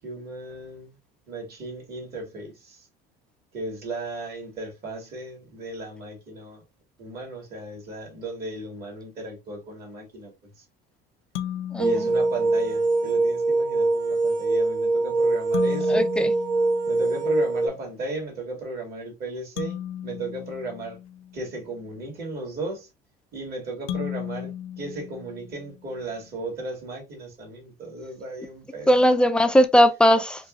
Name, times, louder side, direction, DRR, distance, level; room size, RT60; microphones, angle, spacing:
voice 1, 0.0-1.0 1.3-2.9 3.5-6.6 7.0-10.6 11.8-16.1 16.9-19.8 20.0-21.0 21.3-22.9 23.3-29.3, right 2 dB, 50° right, 2.0 m, -35 dB
sound 1, 11.3-13.0 15.5-17.6 19.6-21.7 23.9-25.9, left 11 dB, 80° left, 0.5 m, -36 dB
sound 2, 11.8-17.7, right 3 dB, 75° right, 1.2 m, -23 dB
voice 2, 15.9-16.3 28.9-30.4, equal, 5° left, 0.4 m, -18 dB
4.9 x 2.0 x 2.4 m
cardioid pair, 120°, 21 cm